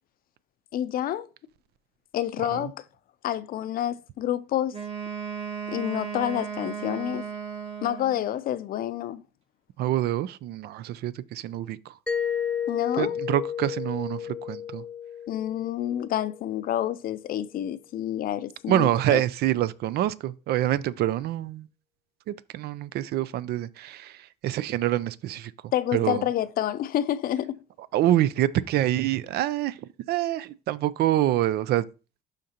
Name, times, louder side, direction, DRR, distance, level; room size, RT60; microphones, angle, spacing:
voice 1, 0.7-1.3 2.1-2.8 3.2-4.8 5.7-7.3 7.8-9.2 12.7-13.2 15.3-19.2 25.7-27.6, left 11 dB, 60° left, 0.5 m, -28 dB
Wind instrument woodwind instrument, 4.7-8.4, right 7 dB, 40° right, 1.5 m, -35 dB
voice 2, 9.8-12.0 13.0-14.8 18.7-21.7 22.3-25.5 25.9-26.3 27.9-31.9, right 13 dB, 70° right, 0.5 m, -26 dB
Mallet percussion, 12.1-16.7, left 8 dB, 5° left, 0.3 m, -32 dB
11.5 x 3.9 x 2.9 m
cardioid pair, 110°, 17 cm